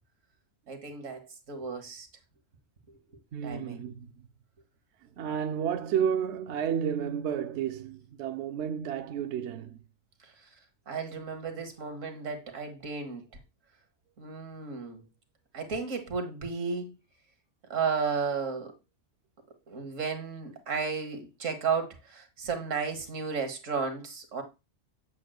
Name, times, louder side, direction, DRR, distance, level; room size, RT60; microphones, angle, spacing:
voice 1, 0.7-2.1 3.4-3.8 10.2-10.5 10.9-13.3 14.2-15.0 15.5-16.9 17.7-18.7 19.7-24.4, right 5 dB, 90° right, 1.8 m, -33 dB
voice 2, 3.3-4.3 5.0-9.8, right 8 dB, 70° right, 0.8 m, -31 dB
7.7 x 7.6 x 2.3 m
omnidirectional pair, 1.3 m